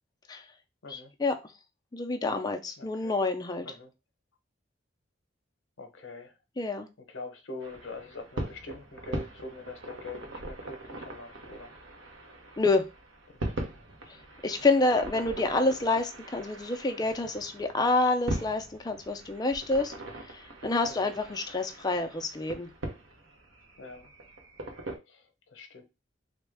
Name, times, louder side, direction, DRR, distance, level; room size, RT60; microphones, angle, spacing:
voice 1, 0.9-1.3 1.9-3.7 6.6-6.9 12.6-12.8 14.4-19.9 20.2-22.7, left 2 dB, 20° left, 0.4 m, -28 dB
voice 2, 2.8-3.2 3.6-3.9 5.8-6.4 7.1-11.7 13.3-13.5 14.5-15.0 20.8-21.1 23.8-24.1 25.1-25.8, left 3 dB, 75° left, 0.8 m, -44 dB
sound 1, 7.6-25.0, right 1 dB, 80° right, 0.8 m, -41 dB
3.4 x 2.2 x 3.3 m
head